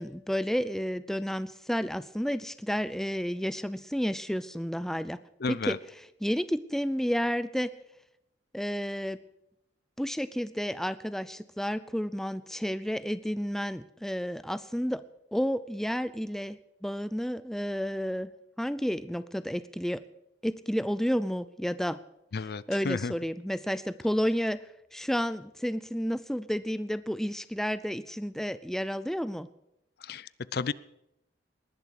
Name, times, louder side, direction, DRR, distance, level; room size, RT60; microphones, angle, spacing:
voice 1, 0.0-5.2 5.5-5.8 6.2-7.7 8.5-9.2 10.0-15.0 15.3-18.3 18.6-20.0 20.4-22.0 22.4-24.6 24.9-29.5, equal, ahead, 14 dB, 0.5 m, -31 dB
voice 2, 5.4-5.8 22.3-23.1 30.0-30.7, left 4 dB, 55° left, 19 dB, 0.5 m, -32 dB
19.5 x 11.0 x 6.5 m, 0.84 s
head